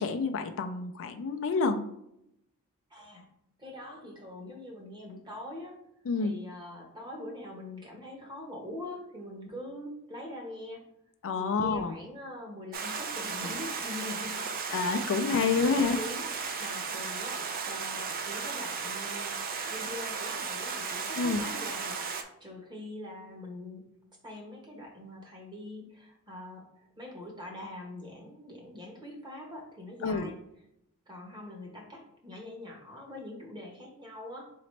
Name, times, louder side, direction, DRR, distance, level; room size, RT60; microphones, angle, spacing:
voice 1, 0.0-1.8 6.1-6.4 11.2-11.9 14.7-16.0 21.2-21.4 30.0-30.3, left 4 dB, 60° left, 7 dB, 0.4 m, -28 dB
voice 2, 2.9-3.3 3.6-5.8 6.2-10.8 11.3-14.5 15.1-21.9 22.4-23.8 24.2-26.6 27.0-30.4 31.1-34.5, left 1 dB, 20° right, 0 dB, 1.1 m, -43 dB
Stream, 12.7-22.2, right 5 dB, 40° right, 0.5 m, -35 dB
4.2 x 3.8 x 3.2 m, 0.78 s
head